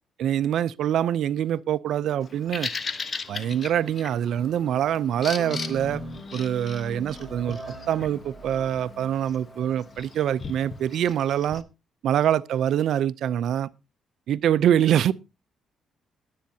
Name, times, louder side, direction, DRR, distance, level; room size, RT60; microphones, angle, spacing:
voice 1, 0.2-2.7 3.3-6.0 6.3-7.6 7.9-11.6 12.0-13.7 14.3-15.1, right 10 dB, 75° right, 0.5 m, -24 dB
Bird vocalization bird call bird song, 2.2-11.6, left 4 dB, 40° left, 1.1 m, -38 dB
Mallet percussion, 3.2-8.0, left 11 dB, 55° left, 5.3 m, -55 dB
sound 1, 5.4-11.6, equal, ahead, 6.5 m, -41 dB
21.0 x 8.5 x 2.8 m
cardioid pair, 90°, 0 cm